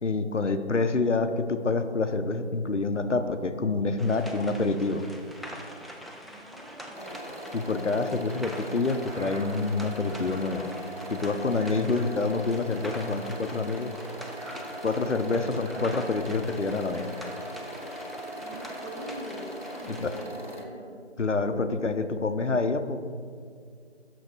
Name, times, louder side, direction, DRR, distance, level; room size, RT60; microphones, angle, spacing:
voice 1, 0.0-5.0 7.5-10.7 11.1-13.9 14.8-17.1 19.9-20.1 21.2-23.0, left 3 dB, 75° left, 9 dB, 0.7 m, -27 dB
sound 1, 4.0-20.2, equal, ahead, 0.4 m, -44 dB
voice 2, 6.2-7.5 18.4-21.0, right 1 dB, 40° right, -1 dB, 1.1 m, -43 dB
sound 2, 6.9-20.6, equal, 40° left, 0.7 m, -40 dB
sound 3, 8.9-18.0 18.4-19.5, right 2 dB, 80° right, 1.0 m, -49 dB
6.7 x 6.4 x 4.8 m, 2.2 s
figure-of-eight pair, 175°, 36 cm